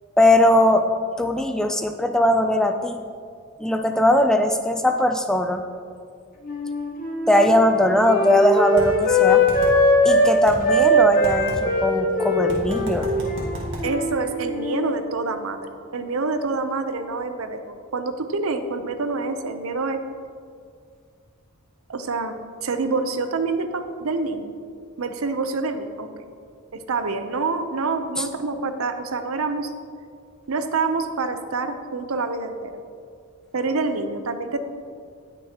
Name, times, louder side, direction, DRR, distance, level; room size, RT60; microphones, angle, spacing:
voice 1, 0.2-0.9 1.2-3.0 3.6-5.6 7.3-9.4 10.0-13.1 28.2-28.3, left 1 dB, 5° left, 5 dB, 0.3 m, -19 dB
Wind instrument woodwind instrument, 6.4-10.3 10.6-14.2 14.4-15.0, left 1 dB, 40° left, 1.6 m, -21 dB
sound 1, 8.8-8.9 9.5-9.7 10.5-10.6 11.2-11.6 12.5-13.8, equal, 60° right, 1.8 m, -31 dB
voice 2, 13.8-15.6 15.9-20.0 21.9-22.3 22.6-24.5 25.0-26.1 26.7-29.7 30.5-32.8 33.5-34.6, right 3 dB, 80° right, 8 dB, 0.7 m, -26 dB
18.0 x 6.2 x 2.9 m, 2.2 s
head